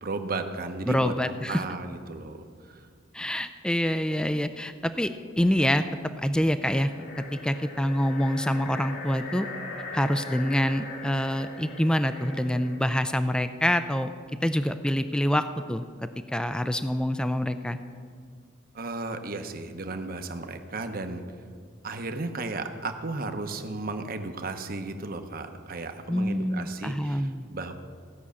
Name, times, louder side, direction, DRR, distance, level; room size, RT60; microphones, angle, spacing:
voice 1, 0.0-1.1 1.5-2.8 18.7-21.2 21.8-27.7, right 3 dB, 45° right, 7 dB, 0.9 m, -34 dB
voice 2, 0.9-1.6 3.1-5.1 5.4-5.8 6.2-6.9 7.3-9.5 9.9-14.1 14.4-15.4 15.7-15.8 16.3-17.8 26.1-27.5, equal, 5° left, 10 dB, 0.4 m, -26 dB
sound 1, 6.6-12.9, left 3 dB, 75° left, 2.1 m, -40 dB
16.0 x 6.2 x 8.4 m, 2.1 s
head